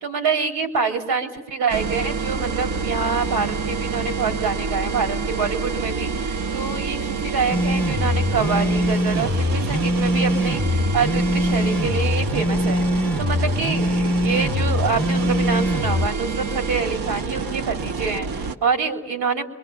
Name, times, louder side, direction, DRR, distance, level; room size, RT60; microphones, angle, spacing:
voice 1, 0.0-19.4, right 5 dB, 80° right, 3 dB, 3.6 m, -26 dB
sound 1, 1.7-18.6, right 4 dB, 60° right, 1.3 m, -28 dB
sound 2, 7.5-16.1, left 1 dB, 5° left, 1.1 m, -22 dB
28.5 x 23.5 x 7.2 m, 1.2 s
supercardioid pair, 55°, 38 cm